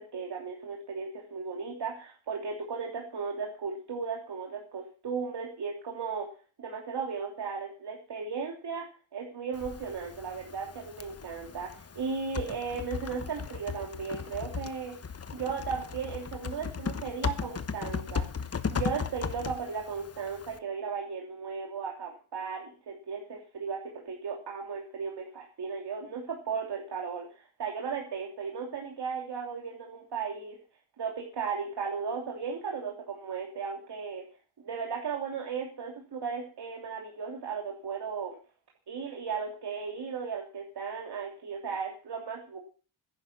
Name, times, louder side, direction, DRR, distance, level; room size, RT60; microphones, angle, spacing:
voice 1, 0.0-6.3 6.6-8.8 9.1-15.0 15.3-30.6 31.0-34.2 34.6-38.4 38.9-42.6, right 5 dB, 55° right, 0 dB, 3.0 m, -36 dB
Typing, 9.5-20.6, left 6 dB, 30° left, 1.1 m, -37 dB
15.5 x 11.0 x 5.9 m, 0.39 s
wide cardioid pair, 130°, 46 cm